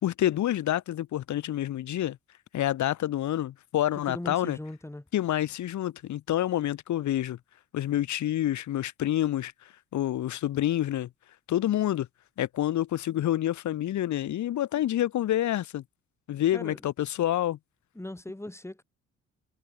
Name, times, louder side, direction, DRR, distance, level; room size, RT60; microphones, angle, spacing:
voice 1, 0.0-2.2 2.5-4.6 5.1-7.4 7.7-9.5 9.9-11.1 11.5-12.1 12.4-15.8 16.3-17.6, left 12 dB, 70° left, 1.7 m, -28 dB
voice 2, 4.1-5.0 16.5-16.8 17.9-18.8, left 1 dB, 10° left, 2.4 m, -39 dB
cardioid pair, 90°, 30 cm